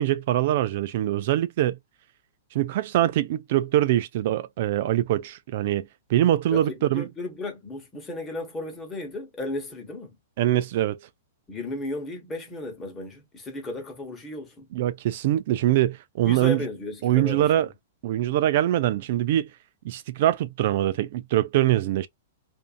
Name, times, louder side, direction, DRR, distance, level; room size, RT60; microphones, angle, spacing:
voice 1, 0.0-1.8 2.5-7.1 10.4-11.0 14.7-16.6 17.0-17.7 18.0-19.5 19.8-22.1, right 13 dB, 55° right, 0.3 m, -23 dB
voice 2, 6.5-10.2 11.5-14.7 16.2-17.6, left 2 dB, 15° left, 1.2 m, -34 dB
2.6 x 2.4 x 2.4 m
hypercardioid pair, 135°, 0 cm